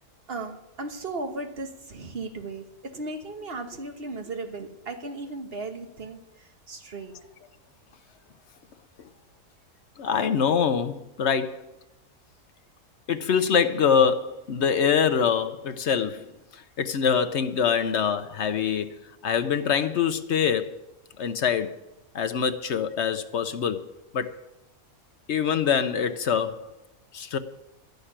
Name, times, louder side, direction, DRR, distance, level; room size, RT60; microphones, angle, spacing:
voice 1, 0.3-7.2, right 3 dB, 40° right, 1.5 m, -36 dB
voice 2, 10.0-11.7 13.1-16.3 16.8-20.7 21.2-21.8 22.1-23.8 24.1-24.4 25.3-26.6 27.1-27.4, left 7 dB, 55° left, 0.8 m, -24 dB
13.0 x 6.6 x 9.9 m
omnidirectional pair, 1.6 m